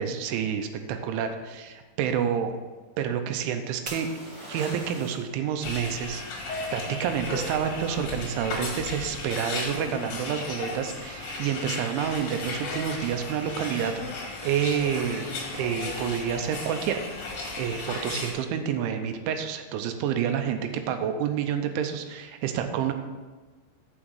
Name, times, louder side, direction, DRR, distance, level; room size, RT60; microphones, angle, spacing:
voice 1, 0.0-2.5 3.0-4.1 4.5-6.2 6.7-17.0 17.6-22.9, right 8 dB, 85° right, 7 dB, 3.1 m, -29 dB
sound 1, 3.9-5.3 9.0-9.4, equal, 10° right, 2.3 m, -40 dB
sound 2, 5.6-18.3, left 3 dB, 60° left, 3.5 m, -35 dB
7.2 x 6.2 x 6.4 m, 1.3 s
omnidirectional pair, 5.5 m